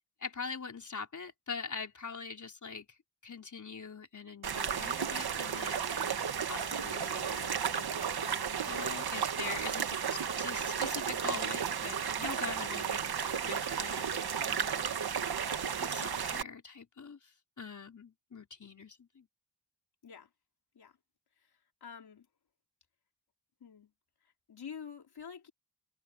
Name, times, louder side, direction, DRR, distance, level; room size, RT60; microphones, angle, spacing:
voice 1, 0.2-2.9 3.2-6.0 6.5-14.9 15.8-19.3, left 5 dB, 50° left, 4.0 m, -43 dB
sound 1, 4.4-16.4, right 7 dB, 75° right, 1.7 m, -33 dB
voice 2, 21.4-22.3 23.6-23.9 24.5-25.5, left 7 dB, 80° left, 3.6 m, -48 dB
wide cardioid pair, 100°, 38 cm